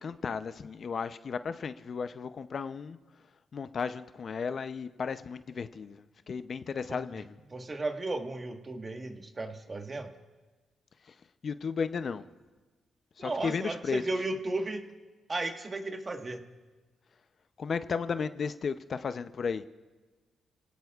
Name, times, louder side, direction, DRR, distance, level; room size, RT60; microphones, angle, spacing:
voice 1, 0.0-3.0 3.5-7.4 11.4-12.3 13.2-14.0 17.6-19.7, left 5 dB, 50° left, 11 dB, 0.6 m, -34 dB
voice 2, 7.5-10.1 13.2-14.9 15.3-16.4, right 2 dB, 30° right, 5 dB, 1.4 m, -34 dB
29.0 x 17.5 x 2.4 m, 1.3 s
cardioid pair, 80°, 0 cm